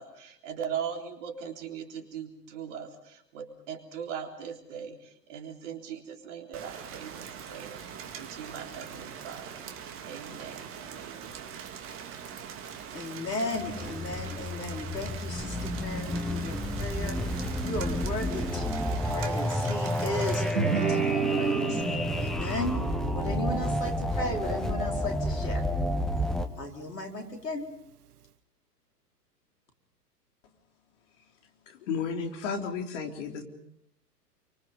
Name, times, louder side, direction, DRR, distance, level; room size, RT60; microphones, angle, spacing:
voice 1, 0.0-9.7 10.1-11.4, right 7 dB, 45° right, 4 dB, 3.7 m, -40 dB
Rain, 6.5-20.5, right 8 dB, 25° right, 2.1 m, -42 dB
voice 2, 12.9-21.8 22.2-25.6 26.6-27.7, left 2 dB, 80° left, 3 dB, 4.7 m, -36 dB
sound 1, 13.5-26.5, left 1 dB, ahead, 0.9 m, -30 dB
Guitar, 20.5-25.6, right 8 dB, 70° right, 0.9 m, -33 dB
voice 3, 31.9-33.4, left 6 dB, 50° left, 4 dB, 3.7 m, -32 dB
28.5 x 24.5 x 5.4 m, 0.71 s
figure-of-eight pair, 110°, 48 cm